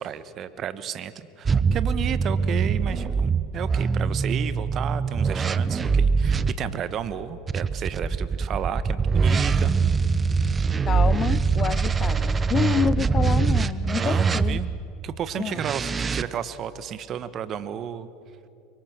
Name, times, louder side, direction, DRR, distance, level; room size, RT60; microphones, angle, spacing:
voice 1, 0.0-9.7 11.3-11.4 13.9-14.7 15.0-18.1, right 9 dB, 45° right, 14 dB, 1.2 m, -32 dB
sound 1, 1.4-6.5 7.5-14.8 15.6-16.2, right 5 dB, 25° right, 0.9 m, -23 dB
voice 2, 10.9-14.6 15.4-15.6, left 7 dB, 35° left, 19 dB, 0.5 m, -28 dB
26.0 x 23.5 x 6.9 m, 2.6 s
hypercardioid pair, 75°, 0 cm